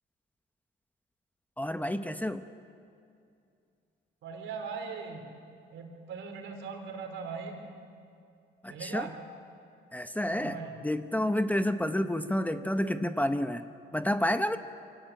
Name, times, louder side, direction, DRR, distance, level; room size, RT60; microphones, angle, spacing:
voice 1, 1.6-2.4 8.6-9.1 9.9-10.6 10.8-13.6 13.9-14.6, left 1 dB, 10° left, 9 dB, 0.9 m, -29 dB
voice 2, 4.2-5.3 5.7-7.6 8.7-9.2 10.3-10.7, right 5 dB, 80° right, 3 dB, 3.8 m, -39 dB
25.0 x 18.0 x 8.1 m, 2.5 s
cardioid pair, 90°, 20 cm